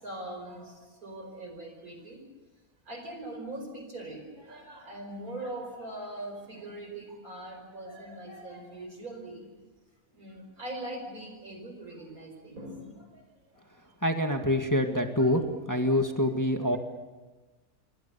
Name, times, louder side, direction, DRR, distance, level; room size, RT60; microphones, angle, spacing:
voice 1, 0.0-2.2 2.9-9.5 10.1-13.2 15.2-15.4 15.8-15.9 16.2-16.3 16.6-16.8, right 1 dB, 80° right, 4 dB, 5.5 m, -41 dB
voice 2, 14.0-15.4 15.7-16.8, left 1 dB, 15° left, 4 dB, 1.8 m, -25 dB
28.0 x 23.5 x 7.0 m, 1.2 s
omnidirectional pair, 1.5 m